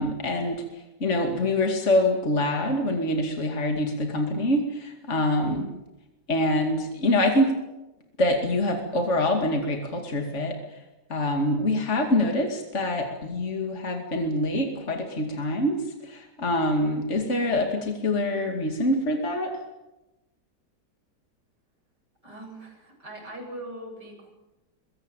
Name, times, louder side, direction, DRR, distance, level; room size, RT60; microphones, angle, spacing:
voice 1, 0.0-5.7 6.3-7.5 8.2-10.8 11.1-19.6, left 1 dB, 45° left, 3 dB, 2.7 m, -25 dB
voice 2, 22.2-24.3, right 1 dB, 85° right, 1 dB, 8.8 m, -41 dB
24.0 x 22.0 x 9.1 m, 1.0 s
omnidirectional pair, 1.8 m